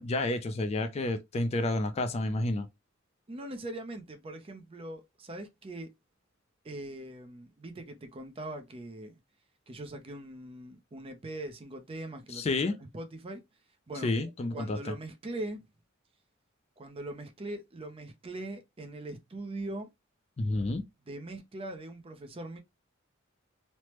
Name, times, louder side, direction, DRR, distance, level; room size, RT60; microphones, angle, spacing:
voice 1, 0.0-2.7 12.3-12.8 14.0-14.9 20.4-20.9, left 2 dB, 30° left, 0.3 m, -30 dB
voice 2, 3.3-5.9 6.6-9.2 9.7-13.4 13.9-15.6 16.8-19.9 21.1-22.6, right 1 dB, 25° right, 0.5 m, -41 dB
3.2 x 2.0 x 2.9 m
head